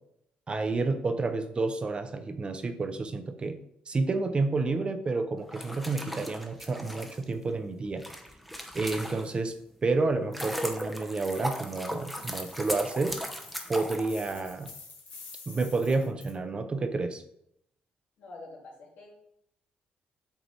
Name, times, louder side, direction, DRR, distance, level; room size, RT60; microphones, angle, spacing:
voice 1, 0.5-3.6 3.9-8.0 8.7-9.5 9.8-13.2 13.7-14.7 15.5-17.2, right 3 dB, 30° right, 8 dB, 0.6 m, -30 dB
sound 1, 5.4-9.5 10.0-14.7, equal, ahead, 0.7 m, -37 dB
sound 2, 11.2-16.3, left 4 dB, 55° left, 1.5 m, -49 dB
voice 2, 18.2-19.1, left 2 dB, 75° left, -2 dB, 2.2 m, -46 dB
8.1 x 2.9 x 4.0 m, 0.75 s
cardioid pair, 100°, 3 cm